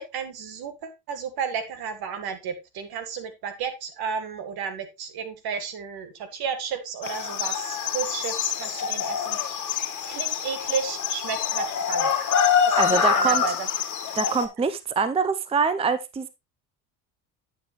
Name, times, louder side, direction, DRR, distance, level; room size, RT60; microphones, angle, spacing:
voice 1, 0.0-9.6 10.1-12.3 12.7-13.7 14.1-14.2, right 6 dB, 65° right, 9 dB, 1.9 m, -33 dB
sound 1, 7.0-14.5, left 8 dB, 45° left, 1.7 m, -25 dB
voice 2, 12.8-13.4 14.2-16.3, right 5 dB, 15° right, 13 dB, 0.6 m, -24 dB
9.5 x 6.4 x 3.1 m, 0.24 s
supercardioid pair, 85°, 40 cm